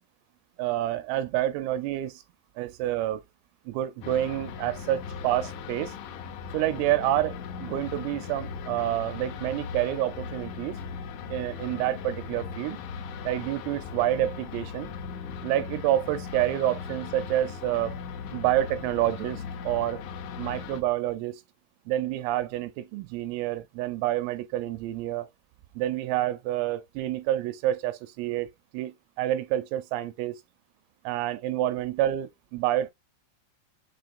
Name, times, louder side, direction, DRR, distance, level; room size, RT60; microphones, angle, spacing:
voice 1, 0.6-2.2 2.6-3.2 3.7-6.0 6.5-10.8 11.3-12.8 13.2-14.9 15.4-18.0 18.3-20.0 20.4-21.4 21.9-25.3 25.8-28.5 28.7-30.4 31.0-32.9, right 13 dB, 85° right, 3.2 m, -28 dB
sound 1, 4.0-20.8, left 6 dB, 75° left, 3.0 m, -38 dB
7.7 x 2.8 x 2.4 m
omnidirectional pair, 5.9 m